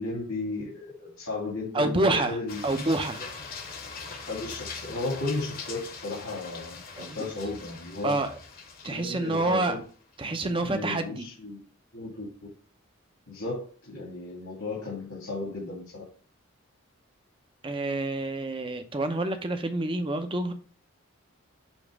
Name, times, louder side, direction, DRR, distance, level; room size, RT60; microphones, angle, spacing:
voice 1, 0.0-2.6 4.2-8.1 8.8-9.8 10.2-11.6 11.9-12.3 13.3-16.0, left 3 dB, 80° left, 2.4 m, -34 dB
voice 2, 1.7-3.2 7.0-7.3 8.0-8.4 8.8-9.8 10.2-11.3 17.6-20.5, right 2 dB, 25° right, 0.6 m, -28 dB
sound 1, 2.5-10.2, left 4 dB, 40° left, 1.0 m, -42 dB
7.1 x 3.0 x 4.8 m
head